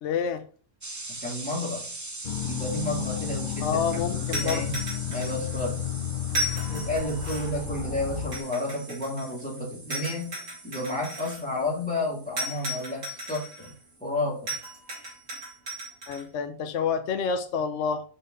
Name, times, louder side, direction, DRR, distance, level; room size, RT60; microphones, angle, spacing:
voice 1, 0.0-0.4 3.6-4.6 16.1-18.0, left 6 dB, 60° left, 0.9 m, -28 dB
sound 1, 0.8-14.4, right 2 dB, 20° right, 0.6 m, -42 dB
voice 2, 1.1-1.8 2.4-4.8 5.1-5.8 6.6-10.4 10.6-13.7 14.0-14.5, left 1 dB, 5° left, 2.8 m, -31 dB
sound 2, 2.2-8.4, left 12 dB, 85° left, 0.4 m, -32 dB
sound 3, 4.3-5.6 6.3-7.6 8.3-9.4 9.9-11.4 12.4-13.7 14.5-16.2, equal, 75° right, 3.2 m, -35 dB
5.6 x 5.5 x 3.9 m
omnidirectional pair, 1.5 m